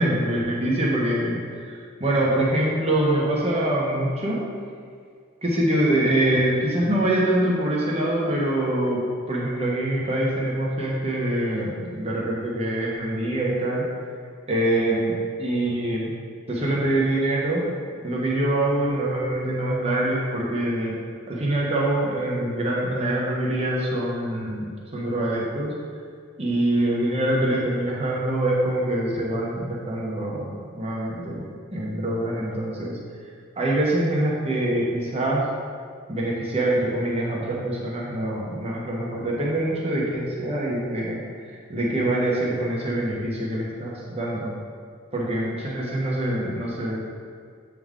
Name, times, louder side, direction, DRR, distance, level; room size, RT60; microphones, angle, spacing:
voice 1, 0.0-4.4 5.4-9.0 9.3-13.8 14.5-16.1 16.5-17.6 18.0-21.0 21.3-24.7 24.9-25.7 26.4-33.0 33.6-35.5 36.1-41.2 41.7-44.5 45.1-47.0, right 1 dB, 30° right, -4 dB, 1.0 m, -24 dB
7.7 x 3.7 x 3.6 m, 2.1 s
head